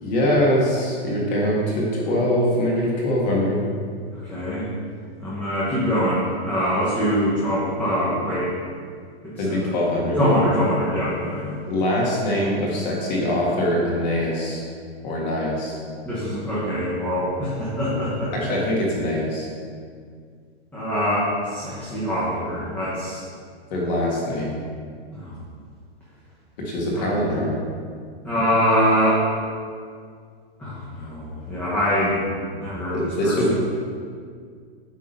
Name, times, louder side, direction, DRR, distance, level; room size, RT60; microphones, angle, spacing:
voice 1, 0.0-3.6 9.4-10.3 11.7-14.6 15.0-15.8 18.3-19.5 23.7-24.6 26.6-27.5 32.9-33.5, left 1 dB, 40° left, -4 dB, 1.9 m, -23 dB
voice 2, 4.2-4.7 5.2-8.5 9.2-9.8 10.2-11.5 16.0-18.5 20.7-23.2 25.1-25.4 26.9-27.1 28.2-29.3 30.6-32.2 32.5-33.5, equal, 5° left, -10 dB, 0.9 m, -24 dB
8.7 x 3.6 x 5.4 m, 2.1 s
hypercardioid pair, 165°, 33 cm